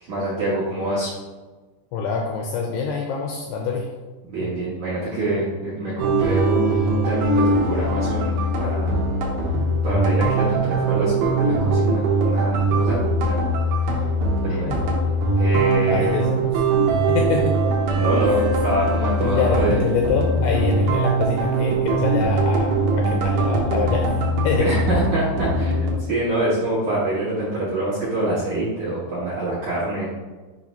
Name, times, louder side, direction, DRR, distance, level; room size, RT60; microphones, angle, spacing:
voice 1, 0.1-1.1 4.3-9.2 9.8-13.4 13.8-14.1 14.4-14.7 15.4-16.2 17.9-19.8 24.6-30.1, right 1 dB, 65° right, -10 dB, 1.9 m, -25 dB
voice 2, 1.9-3.9 4.4-4.5 14.5-14.8 15.9-16.4 17.1-17.6 19.2-24.7, left 5 dB, 85° left, 1 dB, 2.5 m, -25 dB
sound 1, 6.0-25.9, right 2 dB, 80° right, 1.9 m, -21 dB
7.0 x 2.8 x 5.3 m, 1.3 s
omnidirectional pair, 5.4 m